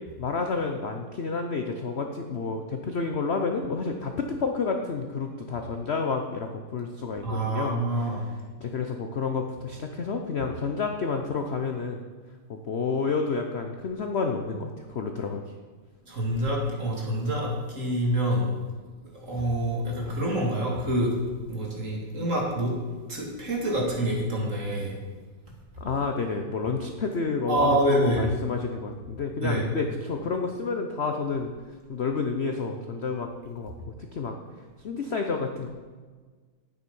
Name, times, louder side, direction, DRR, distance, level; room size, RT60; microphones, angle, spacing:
voice 1, 0.2-8.2 8.6-12.0 12.5-15.4 25.8-31.5 31.9-34.3 34.8-35.7, left 4 dB, 55° left, 4 dB, 0.7 m, -30 dB
voice 2, 7.2-8.3 16.1-18.5 19.1-21.2 21.5-22.7 23.1-25.0 27.5-28.3 29.4-29.7, right 1 dB, 40° right, -2 dB, 2.8 m, -26 dB
10.5 x 9.4 x 5.5 m, 1.4 s
omnidirectional pair, 2.1 m